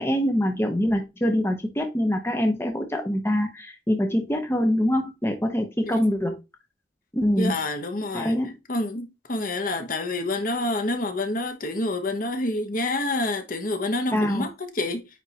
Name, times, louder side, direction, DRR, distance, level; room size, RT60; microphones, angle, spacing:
voice 1, 0.0-6.4 7.1-7.6 8.1-8.5 14.1-14.4, equal, 15° left, 0.9 m, -24 dB
voice 2, 7.4-8.4 8.7-15.0, left 2 dB, 45° left, 1.0 m, -28 dB
9.2 x 3.5 x 2.9 m
head